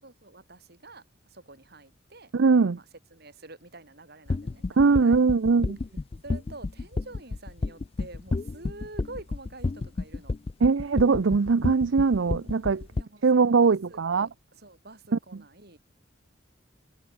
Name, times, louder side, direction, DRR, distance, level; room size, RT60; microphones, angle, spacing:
voice 1, 0.0-2.3 2.7-5.2 6.2-10.4 12.9-15.8, right 2 dB, 55° right, 7.2 m, -47 dB
voice 2, 2.3-2.8 4.8-5.8 10.6-12.9 13.2-14.3, right 4 dB, 80° right, 0.6 m, -21 dB
sound 1, 4.3-13.0, left 3 dB, 30° left, 0.4 m, -30 dB
head